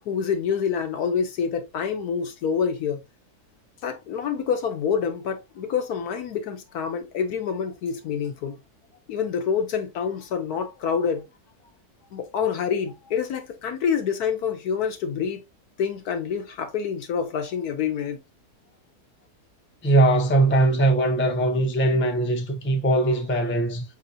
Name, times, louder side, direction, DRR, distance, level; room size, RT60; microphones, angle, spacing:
voice 1, 0.0-3.0 3.8-8.6 9.1-11.2 12.1-15.4 15.8-18.2, left 7 dB, 70° left, 1.3 m, -27 dB
voice 2, 19.8-23.8, right 2 dB, 10° left, 0.5 m, -21 dB
5.6 x 3.5 x 2.6 m
omnidirectional pair, 1.7 m